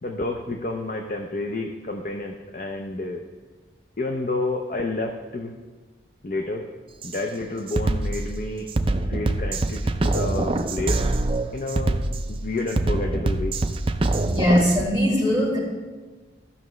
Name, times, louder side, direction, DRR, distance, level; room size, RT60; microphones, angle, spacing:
voice 1, 0.0-3.2 4.0-5.5 6.2-6.6 7.0-8.7 9.0-11.0 11.5-12.0 12.3-13.6, left 2 dB, 45° left, 3 dB, 0.6 m, -29 dB
Drum kit, 7.0-7.2 7.7-14.9, right 2 dB, 30° right, 0.4 m, -24 dB
voice 2, 14.3-15.6, equal, 30° left, -7 dB, 3.0 m, -20 dB
15.0 x 5.9 x 3.2 m, 1.3 s
head